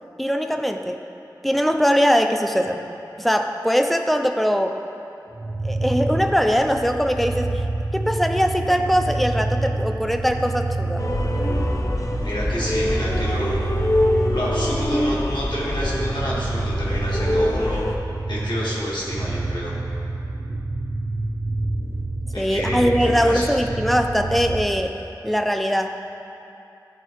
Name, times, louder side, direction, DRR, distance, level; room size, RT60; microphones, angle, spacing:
voice 1, 0.2-1.0 1.4-2.9 3.2-4.8 5.6-7.6 7.9-11.0 22.4-25.0 25.2-26.0, equal, ahead, 5 dB, 0.5 m, -21 dB
sound 1, 5.3-24.7, right 2 dB, 70° right, 0.6 m, -28 dB
sound 2, 11.0-18.0, left 1 dB, 45° left, 0.6 m, -24 dB
voice 2, 12.2-13.5 14.3-17.8 18.3-19.7 22.3-23.5, equal, 80° left, -7 dB, 1.7 m, -29 dB
12.5 x 4.5 x 3.1 m, 2.7 s
wide cardioid pair, 40°, 8 cm